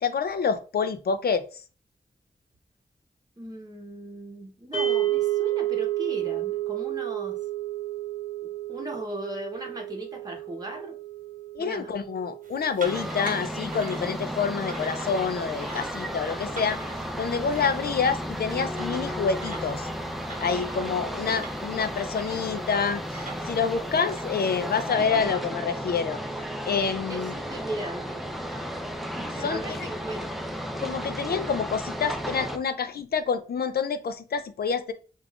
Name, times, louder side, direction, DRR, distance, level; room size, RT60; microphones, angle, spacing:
voice 1, 0.0-1.4 11.5-16.8 17.2-19.9 20.4-26.2 26.6-27.3 29.4-29.9 30.8-34.9, left 6 dB, 85° left, 10 dB, 0.5 m, -27 dB
voice 2, 3.4-7.3 8.7-10.9 11.6-11.9 27.1-28.8 29.2-30.4, right 1 dB, 25° right, -1 dB, 0.9 m, -38 dB
sound 1, 4.7-15.0, right 13 dB, 35° left, 1.1 m, -32 dB
sound 2, 12.4-24.9, right 3 dB, 55° right, 0.8 m, -45 dB
sound 3, 12.8-32.6, equal, ahead, 0.5 m, -34 dB
5.1 x 2.4 x 2.3 m, 0.36 s
wide cardioid pair, 85°, 16 cm